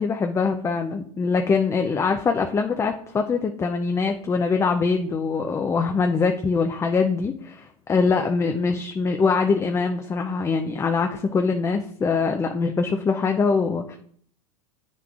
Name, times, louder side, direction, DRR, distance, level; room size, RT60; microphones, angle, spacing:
voice 1, 0.0-14.0, left 4 dB, 15° left, 4 dB, 0.5 m, -23 dB
8.7 x 5.9 x 2.4 m, 0.62 s
hypercardioid pair, 110°, 18 cm